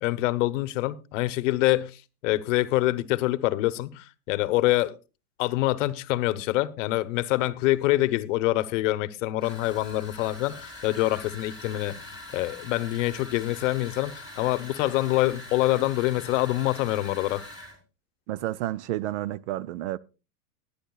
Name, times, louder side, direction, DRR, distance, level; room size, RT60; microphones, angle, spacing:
voice 1, 0.0-1.9 2.2-4.9 5.4-12.0 12.3-17.4, left 17 dB, 55° left, 0.9 m, -25 dB
sound 1, 9.4-17.8, left 1 dB, 10° right, 3.8 m, -43 dB
voice 2, 18.3-20.0, right 14 dB, 50° right, 0.5 m, -30 dB
20.0 x 10.0 x 2.3 m
supercardioid pair, 135°, 44 cm